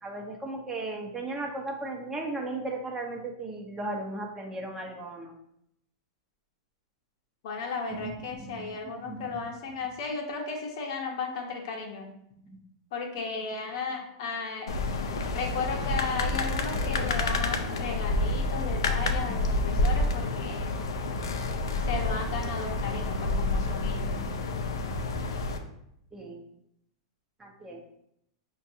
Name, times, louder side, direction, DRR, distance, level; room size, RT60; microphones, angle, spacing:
voice 1, 0.0-5.3 7.9-8.1 8.4-9.5 12.5-12.6 19.3-19.5 23.3-23.4 24.2-24.3 26.1-26.4 27.4-27.8, right 2 dB, 15° right, 1 dB, 0.8 m, -36 dB
voice 2, 7.4-12.1 12.9-14.7 15.3-20.8 21.9-24.1, left 5 dB, 65° left, 1 dB, 0.8 m, -35 dB
sound 1, 14.7-25.6, left 2 dB, 80° left, 0.4 m, -29 dB
5.1 x 2.3 x 2.7 m, 0.76 s
hypercardioid pair, 115°, 3 cm